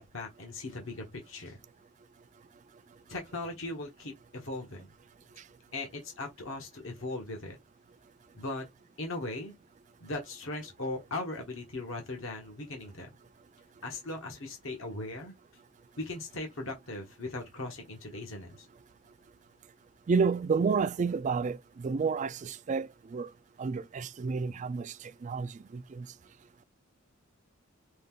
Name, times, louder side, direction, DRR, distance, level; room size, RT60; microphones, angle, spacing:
voice 1, 0.0-1.6 3.1-4.9 5.7-7.6 8.3-8.6 9.0-9.5 10.0-13.1 13.8-15.3 16.0-18.7, left 2 dB, 65° left, 1.3 m, -39 dB
voice 2, 20.1-23.3 23.6-24.9 25.2-26.1, right 5 dB, 35° right, 0.3 m, -30 dB
5.2 x 2.4 x 3.7 m
head